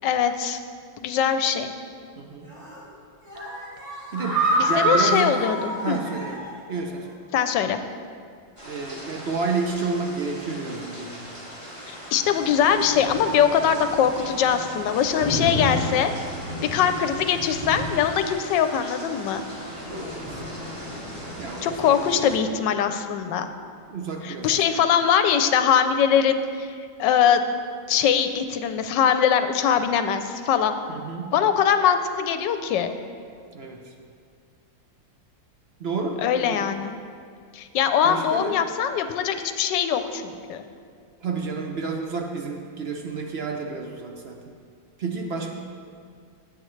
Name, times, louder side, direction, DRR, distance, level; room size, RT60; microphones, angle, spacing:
voice 1, 0.0-0.6 1.0-1.7 4.6-6.0 7.3-7.8 11.9-16.1 16.7-19.4 21.6-23.5 24.2-27.4 27.9-30.8 31.3-32.9 36.2-36.9 37.5-40.6, left 8 dB, 80° left, 9 dB, 1.2 m, -22 dB
voice 2, 2.2-2.5 4.1-5.4 5.8-6.4 6.7-7.2 8.6-11.3 16.7-16.8 19.9-20.2 21.4-22.1 23.9-25.0 30.9-31.3 33.5-33.9 35.8-36.7 38.0-38.5 41.2-44.4 45.0-45.5, right 4 dB, 60° right, 2 dB, 0.6 m, -30 dB
sound 1, 2.4-2.8 3.2-6.6 6.9-7.0 7.4-7.5, right 1 dB, 40° right, 3.4 m, -26 dB
sound 2, 8.6-22.4, left 1 dB, 15° right, 2.1 m, -35 dB
16.0 x 8.0 x 3.2 m, 2.2 s
omnidirectional pair, 2.0 m